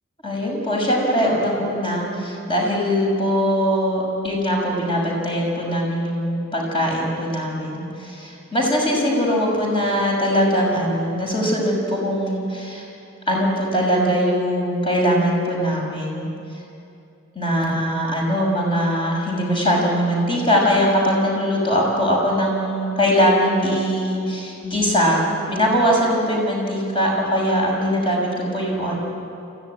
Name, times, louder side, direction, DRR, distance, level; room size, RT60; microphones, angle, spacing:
voice 1, 0.2-12.8 13.3-16.3 17.3-28.9, equal, 25° left, -2 dB, 6.3 m, -21 dB
25.5 x 15.0 x 9.7 m, 2.6 s
head